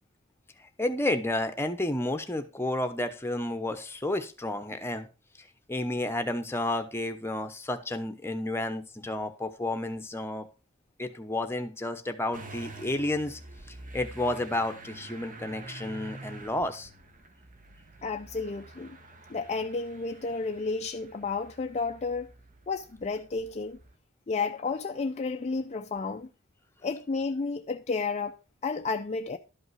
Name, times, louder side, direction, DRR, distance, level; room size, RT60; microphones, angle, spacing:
voice 1, 0.6-5.1 5.7-10.5 11.0-13.4 13.9-16.9, left 1 dB, 10° left, 0.9 m, -31 dB
Motor vehicle (road) / Engine starting, 12.3-24.0, right 2 dB, 40° right, 1.1 m, -48 dB
voice 2, 18.0-19.0 19.3-22.3 22.7-23.8 24.3-26.3 26.8-28.4 28.6-29.4, left 4 dB, 35° left, 0.5 m, -32 dB
12.0 x 5.4 x 4.7 m
head